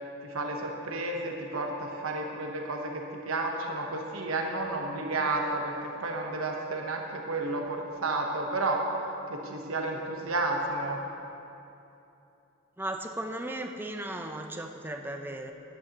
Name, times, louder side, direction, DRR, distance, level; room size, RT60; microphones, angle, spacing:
voice 1, 0.2-8.9 9.3-11.0, right 2 dB, 85° right, 1 dB, 1.1 m, -31 dB
voice 2, 12.8-15.5, right 1 dB, 10° right, 4 dB, 0.6 m, -36 dB
16.0 x 11.5 x 3.0 m, 2.9 s
head